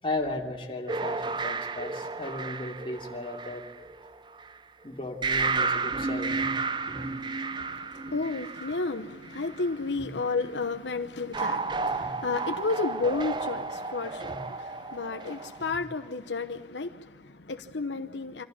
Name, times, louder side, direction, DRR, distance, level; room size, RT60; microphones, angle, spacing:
voice 1, 0.0-3.6 4.8-6.5 6.9-7.1 8.1-8.2 9.9-10.1 11.9-12.1 14.2-14.4, left 2 dB, 30° left, 2.9 m, -36 dB
sound 1, 0.9-4.5 5.2-9.7 11.3-15.7, right 4 dB, 25° right, 0.6 m, -32 dB
voice 2, 6.8-18.4, left 3 dB, 85° left, 1.0 m, -32 dB
25.5 x 14.5 x 9.7 m
head